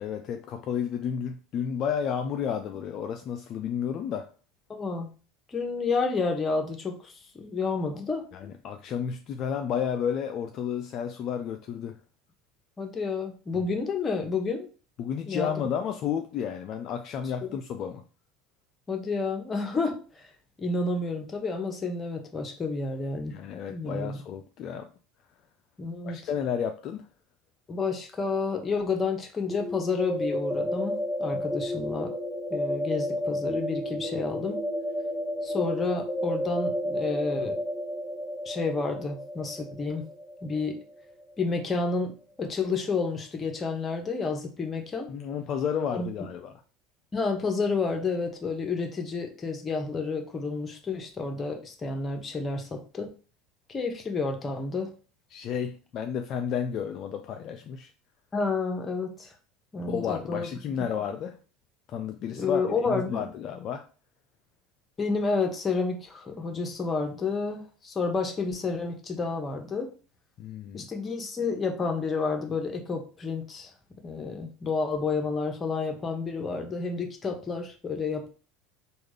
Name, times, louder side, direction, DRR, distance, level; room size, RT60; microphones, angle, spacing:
voice 1, 0.0-4.3 8.3-12.0 13.5-13.6 15.0-18.0 23.3-24.9 26.0-27.1 45.1-46.5 55.3-57.9 59.9-61.4 61.9-63.9 70.4-70.9, left 8 dB, 50° left, 0.3 m, -32 dB
voice 2, 4.7-5.1 5.5-8.3 12.8-14.7 15.3-15.5 17.4-17.6 18.9-20.3 20.6-23.3 23.7-24.2 25.8-26.2 27.7-32.1 32.5-34.6 35.4-37.6 38.4-40.0 40.4-40.8 41.4-45.1 45.9-46.1 47.1-53.1 53.7-54.9 58.3-59.3 59.7-60.5 60.8-60.9 62.3-63.2 65.0-69.9 70.7-73.7 74.0-78.3, left 4 dB, 25° left, 0.9 m, -30 dB
sound 1, 29.5-41.2, equal, 10° right, 1.5 m, -32 dB
3.3 x 2.4 x 3.3 m
hypercardioid pair, 85°, 0 cm